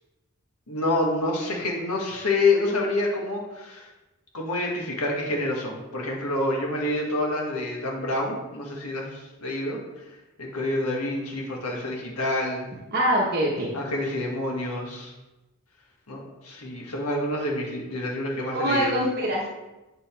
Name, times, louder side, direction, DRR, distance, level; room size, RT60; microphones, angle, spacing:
voice 1, 0.7-3.9 4.3-9.8 10.4-12.7 13.7-15.1 16.1-18.9, left 2 dB, 85° left, -1 dB, 1.5 m, -27 dB
voice 2, 12.9-13.7 18.5-19.5, equal, 45° right, -3 dB, 0.9 m, -24 dB
7.9 x 3.9 x 4.4 m, 1.1 s
head